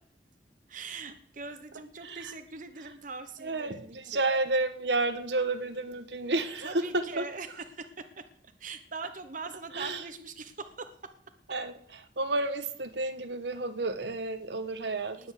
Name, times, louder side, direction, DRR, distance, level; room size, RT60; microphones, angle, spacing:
voice 1, 0.7-4.3 6.6-11.1 15.2-15.3, right 4 dB, 45° right, 8 dB, 1.1 m, -42 dB
voice 2, 3.4-7.2 9.7-10.0 11.5-11.7 12.2-15.3, right 2 dB, 75° right, 9 dB, 1.4 m, -31 dB
19.0 x 7.2 x 8.3 m, 0.64 s
head